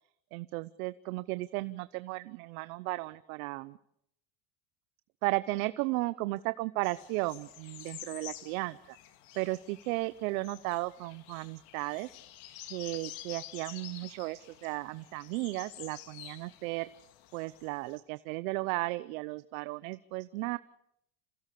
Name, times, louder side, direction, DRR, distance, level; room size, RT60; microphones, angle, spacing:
voice 1, 0.3-3.8 5.2-8.7 9.3-12.1 12.7-16.9 17.3-20.6, right 21 dB, 80° right, 14 dB, 0.8 m, -35 dB
sound 1, 6.8-18.0, left 13 dB, 75° left, 2.1 m, -49 dB
27.5 x 16.0 x 6.8 m, 0.76 s
supercardioid pair, 115°, 42 cm